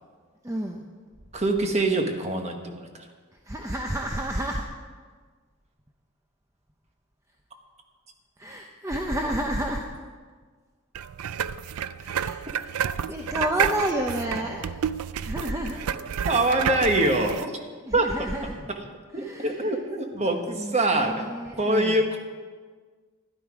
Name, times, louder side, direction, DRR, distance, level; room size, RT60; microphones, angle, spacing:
voice 1, 0.4-0.9 3.4-4.6 8.4-9.9 12.0-14.8 15.2-15.8 16.1-16.3 17.9-18.7 19.2-19.7 20.1-22.0, right 1 dB, 15° right, 2 dB, 0.6 m, -31 dB
voice 2, 1.3-3.1 16.3-17.5 17.9-18.1 19.1-21.3 21.6-22.2, right 2 dB, 30° right, 4 dB, 1.2 m, -24 dB
sound 1, 10.9-17.5, right 8 dB, 85° right, 0.4 m, -30 dB
12.0 x 11.5 x 4.9 m, 1.5 s
head